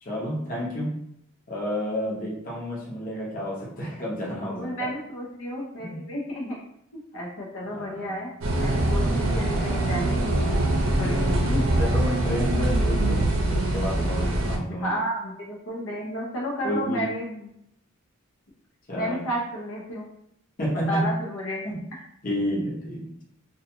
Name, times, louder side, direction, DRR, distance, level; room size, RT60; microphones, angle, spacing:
voice 1, 0.0-1.0 1.5-4.9 5.8-6.0 7.7-8.2 11.8-14.9 16.6-17.0 18.9-19.2 20.6-21.1 21.6-21.8 22.2-23.2, equal, 40° left, -5 dB, 0.8 m, -30 dB
voice 2, 4.4-6.6 6.9-8.3 8.6-11.7 14.7-17.5 18.9-20.0 20.7-21.7, equal, 75° left, -3 dB, 0.7 m, -32 dB
sound 1, 8.4-14.6, right 1 dB, 80° right, 0.5 m, -23 dB
2.4 x 2.3 x 2.8 m, 0.76 s
head